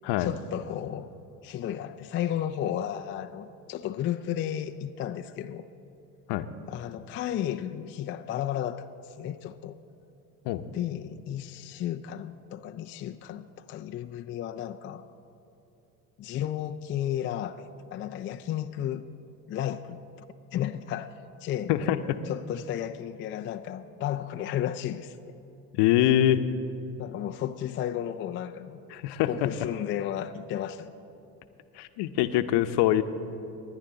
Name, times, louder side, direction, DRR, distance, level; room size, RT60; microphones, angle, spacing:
voice 1, 0.2-1.1 1.4-5.7 6.7-9.8 10.7-15.0 16.2-19.0 19.5-20.0 20.5-21.1 21.4-21.9 22.3-25.3 27.0-28.8 29.3-30.9, left 11 dB, 30° left, 7 dB, 0.4 m, -33 dB
voice 2, 21.7-22.2 25.7-26.4 28.9-29.5 31.8-33.0, left 12 dB, 55° left, 10 dB, 0.9 m, -24 dB
19.5 x 10.5 x 3.9 m, 2.9 s
hypercardioid pair, 80°, 48 cm